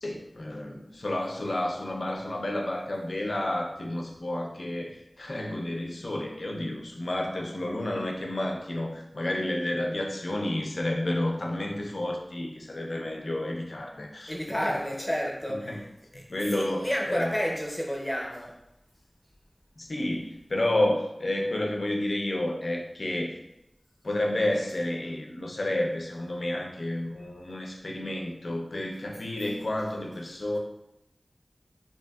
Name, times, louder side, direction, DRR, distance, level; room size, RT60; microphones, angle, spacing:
voice 1, 0.0-14.4 15.5-15.8 16.1-17.3 19.8-23.4 24.0-30.6, left 1 dB, 75° left, 1 dB, 0.4 m, -30 dB
voice 2, 14.3-18.6, equal, 20° left, -1 dB, 0.6 m, -31 dB
2.6 x 2.6 x 2.2 m, 0.87 s
wide cardioid pair, 45°, 0 cm